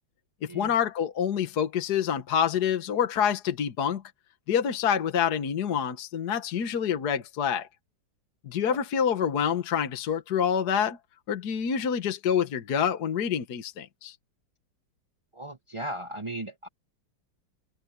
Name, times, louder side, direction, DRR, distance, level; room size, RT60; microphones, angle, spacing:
voice 1, 0.5-4.0 4.5-7.7 8.4-11.0 11.3-14.2, left 8 dB, 60° left, 1.7 m, -27 dB
voice 2, 15.3-16.7, right 1 dB, 55° right, 0.3 m, -37 dB
omnidirectional pair, 2.0 m